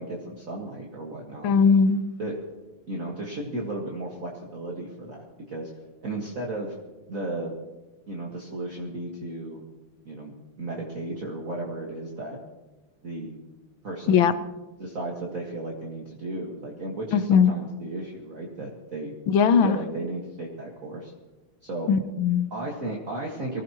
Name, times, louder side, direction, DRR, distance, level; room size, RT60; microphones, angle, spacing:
voice 1, 0.0-1.6 2.2-2.4 2.9-5.7 6.0-6.8 7.1-7.5 8.1-9.6 10.0-10.3 10.6-12.4 13.0-13.4 13.8-14.2 14.8-19.1 19.6-21.1 21.6-21.9 22.5-23.6, right 2 dB, 40° right, -3 dB, 2.1 m, -34 dB
voice 2, 1.4-2.0 14.1-14.3 17.1-17.5 19.3-19.8 21.9-22.5, left 6 dB, 70° left, 12 dB, 1.5 m, -19 dB
24.0 x 16.0 x 3.1 m, 1.1 s
omnidirectional pair, 2.4 m